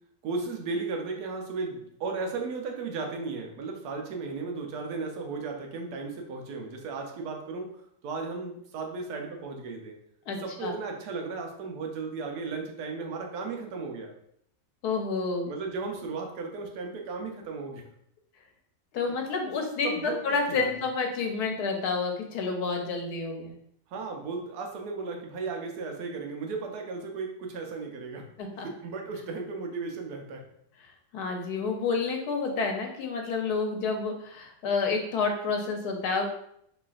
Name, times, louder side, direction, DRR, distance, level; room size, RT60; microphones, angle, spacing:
voice 1, 0.2-7.7 8.0-10.0 10.4-14.1 15.5-17.8 19.8-20.2 20.5-20.7 23.9-28.3 28.5-30.4, right 4 dB, 85° right, 2 dB, 1.2 m, -35 dB
voice 2, 10.3-10.7 14.8-15.5 18.9-23.5 28.4-28.7 31.1-36.3, left 4 dB, 80° left, 2 dB, 1.2 m, -29 dB
3.9 x 3.2 x 2.4 m, 0.70 s
omnidirectional pair, 1.6 m